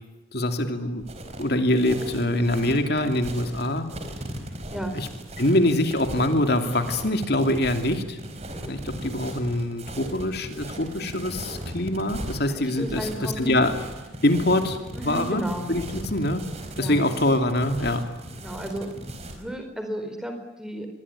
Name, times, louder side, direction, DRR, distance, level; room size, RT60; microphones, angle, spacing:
voice 1, 0.3-1.0 1.4-3.9 4.9-5.1 5.4-8.2 8.7-13.7 14.2-14.8 15.0-15.4 15.7-16.4 16.8-18.0, left 1 dB, 50° left, 7 dB, 2.8 m, -24 dB
sound 1, 1.0-19.4, right 1 dB, 35° right, 4.5 m, -37 dB
voice 2, 12.5-13.6 14.9-15.7 16.8-17.0 18.4-19.0 19.4-20.9, right 1 dB, 5° right, 5 dB, 4.3 m, -33 dB
26.5 x 21.5 x 9.9 m, 1.1 s
head